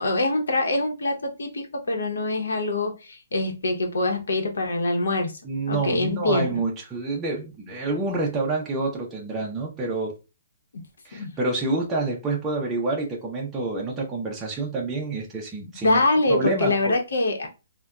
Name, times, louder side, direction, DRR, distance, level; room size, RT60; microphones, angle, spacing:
voice 1, 0.0-5.3 5.7-6.6 11.1-11.3 15.8-17.5, left 2 dB, 85° left, 0.8 m, -24 dB
voice 2, 5.4-10.2 11.0-16.0 16.3-17.0, right 3 dB, 10° right, 0.4 m, -28 dB
3.8 x 2.1 x 2.3 m
hypercardioid pair, 175°, 0 cm